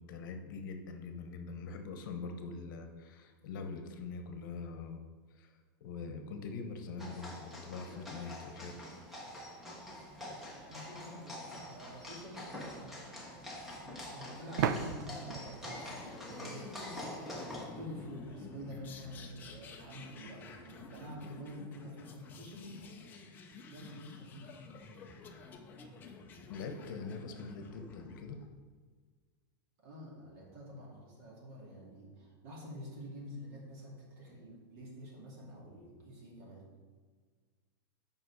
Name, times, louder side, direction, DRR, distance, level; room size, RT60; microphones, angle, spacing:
voice 1, 0.0-5.0 5.3-8.7 26.5-28.4, left 4 dB, 60° left, 6 dB, 1.0 m, -43 dB
sound 1, 7.0-17.7, left 1 dB, ahead, 1.1 m, -46 dB
voice 2, 10.7-13.1 13.8-17.1 17.4-23.2 23.7-24.6 29.8-36.7, equal, 40° right, -3 dB, 2.4 m, -48 dB
sound 2, 11.6-11.7 14.6-17.2, right 8 dB, 55° right, 0.5 m, -37 dB
sound 3, 15.7-28.5, left 4 dB, 15° left, 0.6 m, -51 dB
7.9 x 5.4 x 4.8 m, 1.5 s
supercardioid pair, 170°, 12 cm